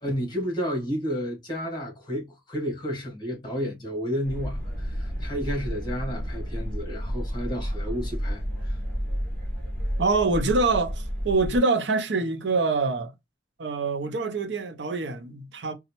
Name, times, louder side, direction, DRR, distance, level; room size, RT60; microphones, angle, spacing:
voice 1, 0.0-8.8, equal, 25° left, 1.5 m, -31 dB
sound 1, 4.2-11.6, equal, 5° left, 1.3 m, -31 dB
voice 2, 10.0-13.1 13.6-15.7, right 3 dB, 80° right, 0.7 m, -25 dB
4.1 x 2.4 x 2.8 m
head